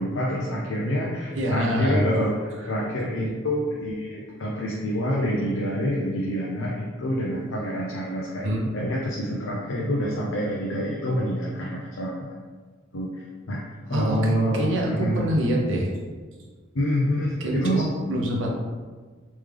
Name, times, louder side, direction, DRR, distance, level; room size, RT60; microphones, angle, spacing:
voice 1, 0.0-2.4 2.7-8.5 8.7-12.3 12.9-15.2 16.7-17.8, equal, 85° left, -4 dB, 0.6 m, -27 dB
voice 2, 1.3-2.0 8.4-8.7 13.9-15.9 17.4-18.5, right 1 dB, 70° right, -1 dB, 0.7 m, -25 dB
3.4 x 3.2 x 3.3 m, 1.4 s
head